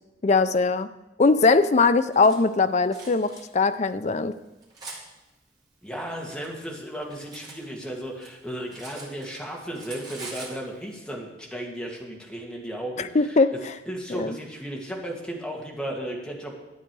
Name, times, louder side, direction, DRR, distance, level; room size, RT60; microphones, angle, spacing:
voice 1, 0.2-0.9 1.2-4.3 13.0-13.7 14.1-14.4, left 3 dB, 40° left, 11 dB, 0.5 m, -21 dB
Cutlery silverware, 1.8-2.4 2.9-3.4 4.1-5.0 5.9-7.6 7.9-9.5 9.7-10.6, right 3 dB, 25° right, 2.7 m, -43 dB
voice 2, 5.8-13.4 13.9-16.6, right 1 dB, 5° left, -1 dB, 1.9 m, -35 dB
12.0 x 8.6 x 4.7 m, 1.0 s
head